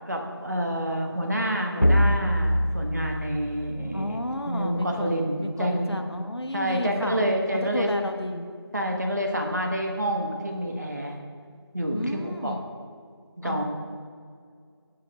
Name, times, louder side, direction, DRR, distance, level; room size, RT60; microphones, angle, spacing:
voice 1, 0.0-4.2 4.5-6.0 6.5-7.9 8.7-11.2 11.7-12.0 12.4-12.6 13.4-13.6, equal, 40° right, 2 dB, 1.2 m, -28 dB
sound 1, 1.8-4.4, equal, 40° left, 0.4 m, -24 dB
voice 2, 3.9-8.5 11.9-12.6 13.4-13.6, left 1 dB, 75° left, 5 dB, 1.1 m, -32 dB
16.5 x 8.5 x 2.3 m, 2.1 s
figure-of-eight pair, 175°, 14 cm